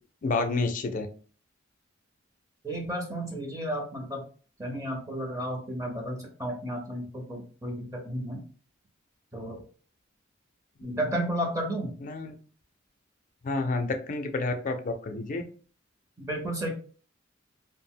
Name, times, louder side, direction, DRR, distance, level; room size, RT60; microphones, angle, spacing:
voice 1, 0.2-1.1 10.8-11.0 12.0-12.3 13.4-15.4, left 3 dB, 40° left, 6 dB, 0.4 m, -29 dB
voice 2, 2.6-4.2 4.6-8.4 9.3-9.6 10.8-12.0 16.2-16.7, right 1 dB, 15° right, 1 dB, 0.6 m, -32 dB
2.4 x 2.0 x 3.6 m, 0.41 s
head